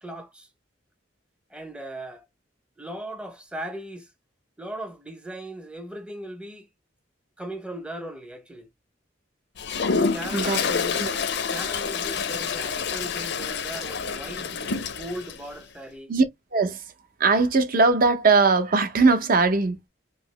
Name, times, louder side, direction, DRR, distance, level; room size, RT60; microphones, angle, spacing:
voice 1, 0.0-0.5 1.5-2.3 2.8-4.1 4.6-6.7 7.4-8.7 10.1-11.0 11.5-16.1, right 1 dB, 5° right, 0.6 m, -38 dB
Toilet flush, 9.6-15.4, left 5 dB, 60° left, 0.5 m, -28 dB
voice 2, 10.3-10.6 10.9-11.1 16.1-16.2 16.5-16.8 17.2-19.9, right 3 dB, 50° right, 0.6 m, -20 dB
3.0 x 2.8 x 3.0 m
head